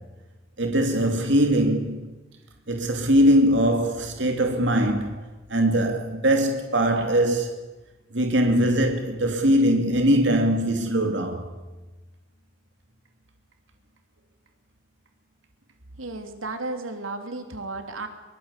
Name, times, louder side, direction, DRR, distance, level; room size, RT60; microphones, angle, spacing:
voice 1, 0.6-2.1 2.7-5.2 5.5-7.6 8.1-11.5, equal, 60° right, 2.7 m, -21 dB
voice 2, 16.0-18.1, right 3 dB, 85° right, 3.2 m, -33 dB
24.0 x 23.5 x 8.4 m
head